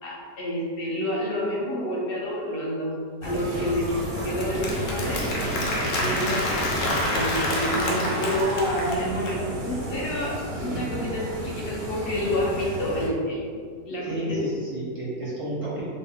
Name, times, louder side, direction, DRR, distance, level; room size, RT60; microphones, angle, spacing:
voice 1, 0.0-2.9 3.2-3.9 4.2-5.2 6.0-6.4 7.1-13.4 13.9-14.0, left 1 dB, 55° left, -5 dB, 0.6 m, -28 dB
sound 1, 3.2-13.1, right 1 dB, 60° right, 0.6 m, -32 dB
Applause, 3.6-9.4, left 1 dB, 80° left, 1.3 m, -28 dB
voice 2, 6.0-6.3 14.0-15.8, right 1 dB, 25° right, -9 dB, 0.9 m, -31 dB
3.0 x 2.4 x 3.5 m, 2.1 s
omnidirectional pair, 1.8 m